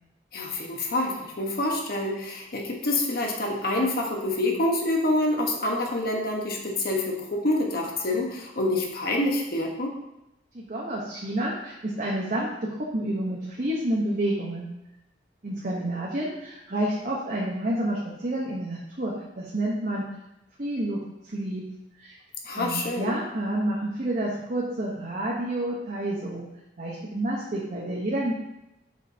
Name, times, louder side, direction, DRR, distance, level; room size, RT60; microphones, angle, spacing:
voice 1, 0.3-9.9 22.4-23.1, left 1 dB, 55° left, 0 dB, 1.2 m, -27 dB
voice 2, 10.5-14.7 15.4-20.0 20.6-21.6 22.0-22.2 22.5-26.5 26.8-28.3, right 1 dB, 45° right, -4 dB, 1.1 m, -29 dB
7.5 x 6.4 x 2.8 m, 0.91 s
head